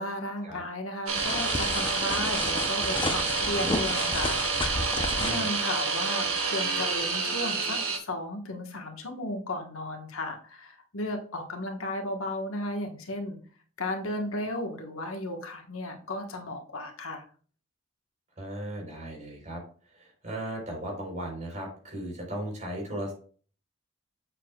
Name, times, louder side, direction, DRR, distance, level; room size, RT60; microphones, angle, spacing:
voice 1, 0.0-13.4 13.8-17.2, left 1 dB, 70° left, 3 dB, 1.4 m, -35 dB
sound 1, 1.1-8.0, right 4 dB, 85° right, 1.8 m, -28 dB
sound 2, 1.2-5.5, left 2 dB, 25° left, 0.7 m, -32 dB
voice 2, 5.2-5.5 18.4-23.1, right 1 dB, 35° right, 0 dB, 4.0 m, -37 dB
7.8 x 7.3 x 2.4 m, 0.42 s
head